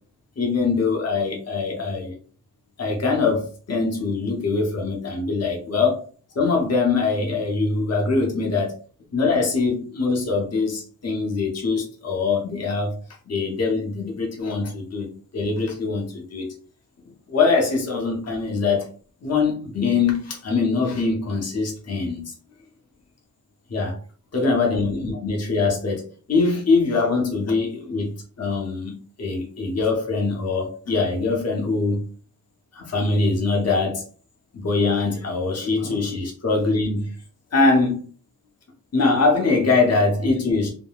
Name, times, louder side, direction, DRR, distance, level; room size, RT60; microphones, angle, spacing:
voice 1, 0.4-2.1 2.8-6.0 6.3-8.7 9.1-13.0 13.3-16.5 17.0-18.9 19.2-22.3 23.7-24.0 24.3-32.0 32.7-34.0 34.5-37.2 37.5-38.0 38.9-40.7, left 4 dB, 40° left, 0 dB, 0.9 m, -23 dB
3.7 x 2.1 x 2.3 m, 0.41 s
wide cardioid pair, 90°, 37 cm